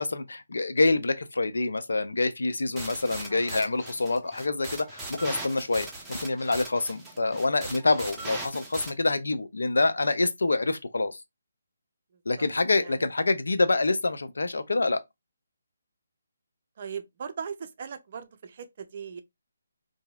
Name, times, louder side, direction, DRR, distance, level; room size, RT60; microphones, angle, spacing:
voice 1, 0.0-11.2 12.3-15.0, left 3 dB, 70° left, 0.4 m, -26 dB
sound 1, 2.8-8.9, right 2 dB, 5° right, 0.7 m, -39 dB
voice 2, 16.8-19.2, right 6 dB, 45° right, 0.4 m, -39 dB
2.7 x 2.6 x 2.3 m
figure-of-eight pair, 145°, 0 cm